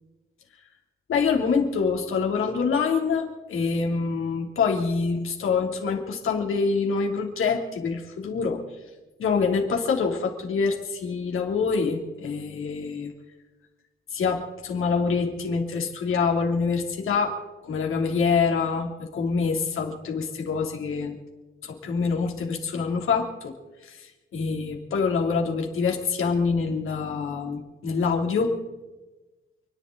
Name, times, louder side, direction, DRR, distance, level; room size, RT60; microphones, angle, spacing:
voice 1, 1.1-8.6 9.2-13.1 14.1-17.3 17.6-21.2 21.6-23.5 23.8-28.6, left 5 dB, 80° left, 1 dB, 3.1 m, -25 dB
29.5 x 11.0 x 4.0 m, 1.1 s
wide cardioid pair, 145°, 21 cm